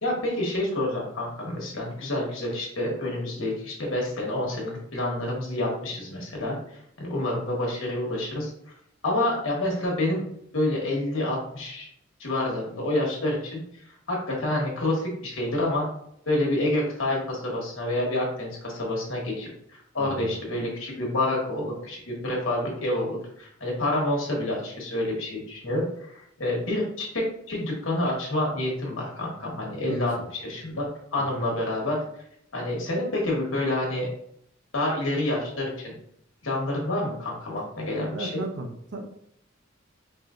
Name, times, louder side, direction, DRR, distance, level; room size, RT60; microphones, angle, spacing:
voice 1, 0.0-6.5 7.0-8.5 9.0-10.2 10.5-11.9 12.2-13.6 14.1-15.9 16.3-19.5 19.9-25.9 26.1-30.1 30.4-30.9 31.1-32.0 32.5-34.1 34.7-35.9 36.4-38.4, left 1 dB, 65° left, -2 dB, 1.3 m, -28 dB
voice 2, 20.0-20.3 29.9-30.3 31.3-31.4 38.1-39.0, right 2 dB, 55° right, 3 dB, 0.6 m, -36 dB
4.7 x 2.7 x 2.5 m, 0.71 s
head